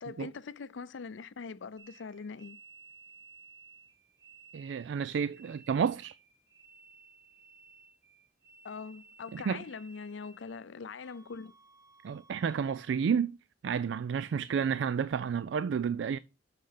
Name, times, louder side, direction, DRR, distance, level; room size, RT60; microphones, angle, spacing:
voice 1, 0.0-2.6 8.6-11.5, left 5 dB, 85° left, 0.5 m, -42 dB
sound 1, 1.8-10.6 11.0-12.9, right 4 dB, 15° right, 0.9 m, -57 dB
voice 2, 4.5-6.2 9.3-9.6 12.0-13.4 13.6-16.2, right 7 dB, 75° right, 0.3 m, -31 dB
6.5 x 6.4 x 5.7 m
head